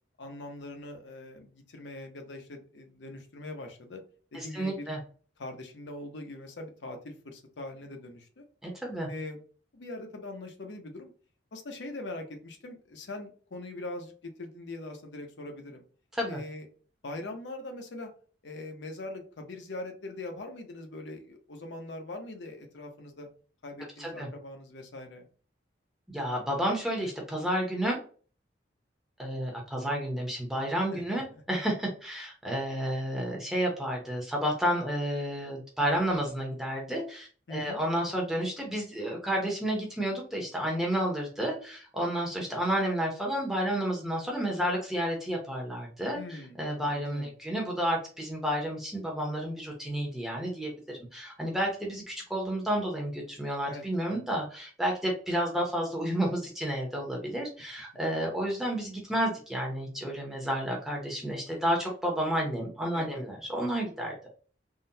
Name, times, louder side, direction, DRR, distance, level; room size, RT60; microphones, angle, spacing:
voice 1, 0.2-4.0 4.3-4.9 5.4-8.4 9.1-9.4 9.7-11.1 11.5-15.8 16.3-16.6 17.0-18.1 18.4-23.3 23.6-25.3 30.9-31.4 37.5-37.8 46.1-47.3 53.6-54.2 62.9-63.2, left 2 dB, 70° left, 4 dB, 0.7 m, -42 dB
voice 2, 4.3-5.0 8.6-9.1 16.1-16.4 24.0-24.3 26.1-28.0 29.2-64.1, equal, ahead, -2 dB, 0.6 m, -31 dB
3.7 x 2.1 x 2.7 m, 0.40 s
head